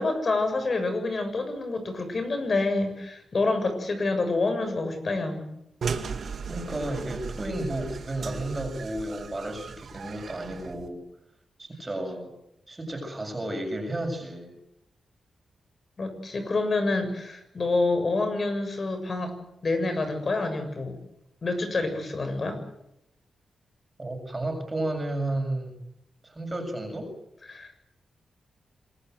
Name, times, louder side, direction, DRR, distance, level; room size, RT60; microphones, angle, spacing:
voice 1, 0.0-5.5 16.0-19.3 19.6-21.0 21.4-22.6 27.5-27.8, left 3 dB, 45° left, 8 dB, 7.1 m, -27 dB
sound 1, 5.8-10.9, right 5 dB, 65° right, 2.4 m, -36 dB
voice 2, 6.5-11.0 11.6-12.3 12.7-14.5 24.0-25.7 26.2-27.1, right 1 dB, 25° right, 3 dB, 7.1 m, -32 dB
26.5 x 21.0 x 8.0 m, 0.80 s
cardioid pair, 85°, 0 cm